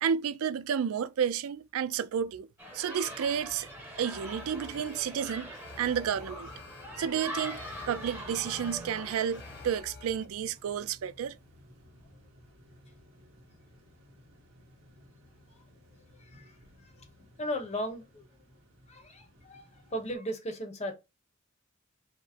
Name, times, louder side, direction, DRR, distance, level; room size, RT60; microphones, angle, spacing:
voice 1, 0.0-2.5 2.7-3.7 4.0-5.5 5.8-6.5 7.0-7.6 7.9-11.4, right 8 dB, 85° right, 0.4 m, -31 dB
sound 1, 2.6-9.8, equal, 10° right, 1.0 m, -43 dB
sound 2, 3.2-20.1, equal, 65° right, 1.3 m, -56 dB
Alarm, 4.1-10.3, left 5 dB, 55° left, 0.4 m, -51 dB
voice 2, 16.1-17.1 17.4-18.2 18.9-20.9, equal, 30° left, 0.9 m, -37 dB
4.9 x 2.0 x 4.2 m
head